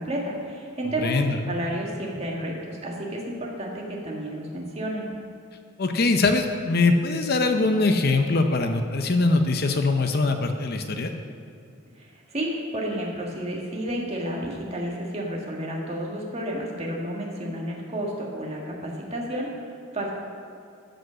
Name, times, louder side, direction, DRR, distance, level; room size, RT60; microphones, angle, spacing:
voice 1, 0.0-1.1 1.5-5.1 12.0-19.5 19.9-20.1, right 1 dB, 30° right, -2 dB, 1.8 m, -31 dB
voice 2, 1.0-1.4 5.8-11.1, left 3 dB, 50° left, 6 dB, 0.7 m, -22 dB
14.0 x 5.2 x 6.4 m, 2.4 s
head